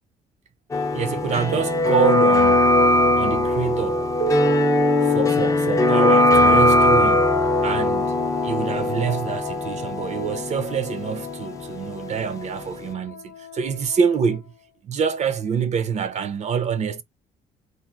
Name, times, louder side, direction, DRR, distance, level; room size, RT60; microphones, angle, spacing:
sound 1, 0.7-12.4 12.7-12.8, left 2 dB, 20° left, 0.4 m, -20 dB
voice 1, 0.9-2.7 3.1-4.1 5.0-14.5 14.8-17.0, right 7 dB, 40° right, 0.4 m, -26 dB
Keyboard (musical), 4.2-7.4, right 11 dB, 85° right, 0.8 m, -31 dB
Wind instrument woodwind instrument, 7.3-14.7, left 10 dB, 75° left, 0.6 m, -39 dB
3.3 x 2.0 x 2.4 m
cardioid pair, 110°, 17 cm